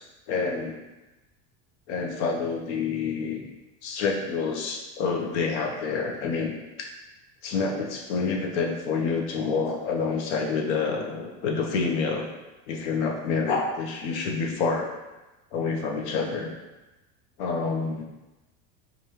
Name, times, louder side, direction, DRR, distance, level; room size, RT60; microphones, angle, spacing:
voice 1, 0.3-0.8 1.9-3.4 3.8-6.5 6.8-6.9 7.4-12.3 12.7-14.9 15.5-16.5 17.4-18.0, left 4 dB, 75° left, 0 dB, 0.8 m, -28 dB
4.8 x 2.5 x 2.9 m, 1.1 s
cardioid pair, 175°, 35 cm